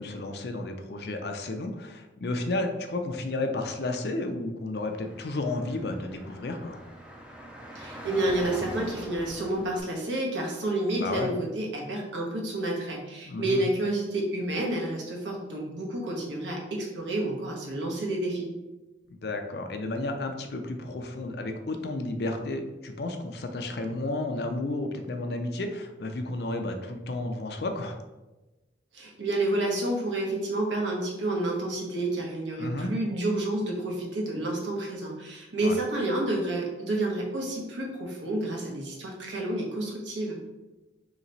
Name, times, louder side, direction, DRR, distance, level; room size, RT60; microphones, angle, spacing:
voice 1, 0.0-6.8 11.0-11.3 13.2-13.6 19.1-28.0 32.6-32.9 35.6-35.8, left 2 dB, 60° left, 5 dB, 0.5 m, -32 dB
Car / Traffic noise roadway noise, 4.7-9.8, right 1 dB, 5° right, 0.4 m, -42 dB
voice 2, 7.7-18.5 28.9-40.4, right 1 dB, 75° right, -1 dB, 1.1 m, -29 dB
3.3 x 3.0 x 3.9 m, 1.1 s
head